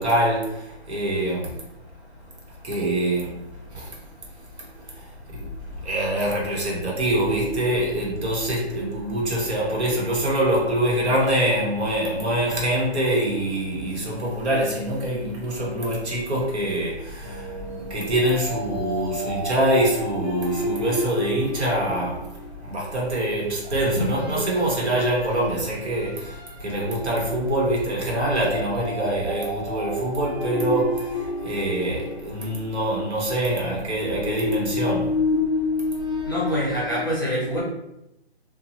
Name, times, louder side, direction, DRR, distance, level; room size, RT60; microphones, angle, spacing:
voice 1, 0.0-1.6 2.6-3.5 3.7-4.0 5.3-17.6 17.9-22.3 22.6-35.1, right 1 dB, 80° right, 1.1 m, -24 dB
sound 1, 17.2-22.5 23.6-24.9 25.3-25.5 26.1-26.6 28.2-32.7 33.9-37.0, left 2 dB, 5° right, 0.9 m, -30 dB
voice 2, 36.3-37.6, equal, 20° left, 0.5 m, -25 dB
2.8 x 2.2 x 2.7 m
hypercardioid pair, 165°, 33 cm